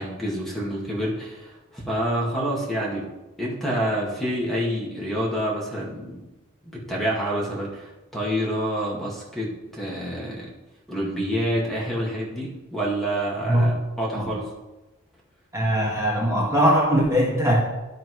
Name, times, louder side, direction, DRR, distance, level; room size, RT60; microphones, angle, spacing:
voice 1, 0.0-3.1 3.4-6.2 6.6-10.5 10.9-14.5, equal, ahead, -5 dB, 2.1 m, -28 dB
voice 2, 15.5-17.6, equal, 15° right, -4 dB, 1.7 m, -20 dB
12.0 x 4.1 x 4.7 m, 1.0 s
head